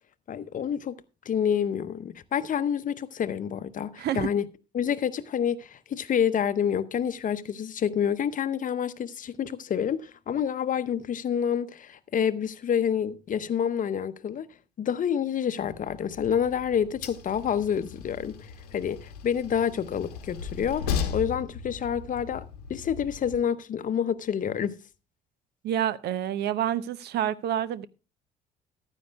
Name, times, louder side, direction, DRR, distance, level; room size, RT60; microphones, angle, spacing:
voice 1, 0.3-1.0 1.3-4.5 4.7-14.5 14.8-22.4 22.7-24.8, left 8 dB, 40° left, 0.8 m, -28 dB
voice 2, 4.0-4.3 25.6-27.9, right 11 dB, 55° right, 0.7 m, -28 dB
Train, 15.6-23.4, left 7 dB, 80° left, 1.0 m, -37 dB
14.5 x 12.5 x 2.3 m
figure-of-eight pair, 50°, 20 cm